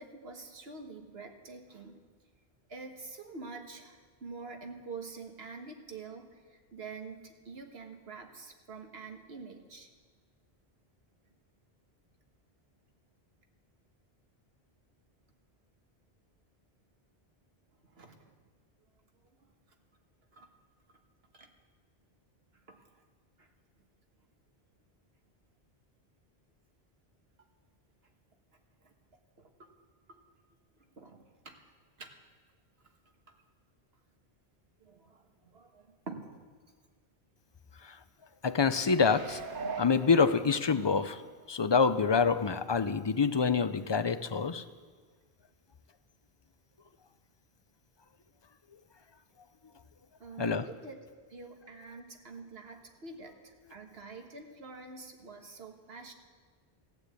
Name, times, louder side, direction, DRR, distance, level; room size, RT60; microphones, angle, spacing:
voice 1, 0.0-2.0 2.7-9.9 17.9-18.3 20.3-20.5 21.3-21.5 22.7-22.8 23.4-23.5 28.8-28.9 29.6-29.7 30.1-30.2 31.0-31.6 32.0-32.2 34.8-36.4 50.2-51.0 51.3-56.1, right 4 dB, 75° right, 4 dB, 1.6 m, -46 dB
voice 2, 38.4-39.4 39.8-41.2 41.5-44.6 50.4-50.7, left 5 dB, 35° left, 12 dB, 0.4 m, -26 dB
sound 1, 38.9-40.9 41.4-41.5, right 4 dB, 60° right, 1.0 m, -41 dB
14.5 x 9.5 x 8.3 m, 1.5 s
omnidirectional pair, 1.1 m